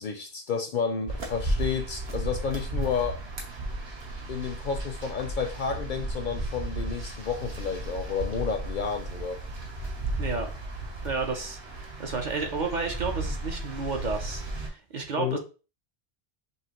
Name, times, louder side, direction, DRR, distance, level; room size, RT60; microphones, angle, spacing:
voice 1, 0.0-3.2 4.3-9.4 15.2-15.4, left 6 dB, 60° left, 0.6 m, -31 dB
sound 1, 1.1-14.7, right 2 dB, 75° right, 1.3 m, -34 dB
voice 2, 10.2-10.5 11.0-15.4, right 4 dB, 50° right, 0.8 m, -32 dB
5.6 x 2.7 x 2.9 m
omnidirectional pair, 1.1 m